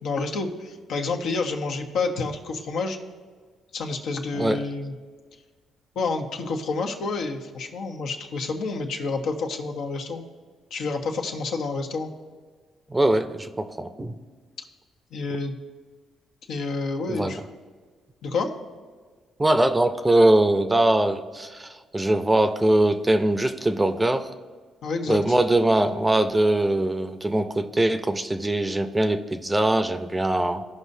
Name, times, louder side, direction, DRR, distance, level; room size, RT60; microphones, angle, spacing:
voice 1, 0.0-3.0 3.7-4.9 5.9-10.2 10.7-12.1 15.1-15.5 16.5-17.4 18.2-18.5 24.8-25.4, left 3 dB, 75° left, 3 dB, 1.0 m, -29 dB
voice 2, 12.9-14.2 17.1-17.3 19.4-24.3 25.1-30.6, right 1 dB, 15° right, 8 dB, 0.6 m, -22 dB
16.0 x 5.4 x 2.7 m, 1.5 s
cardioid pair, 90°, 0 cm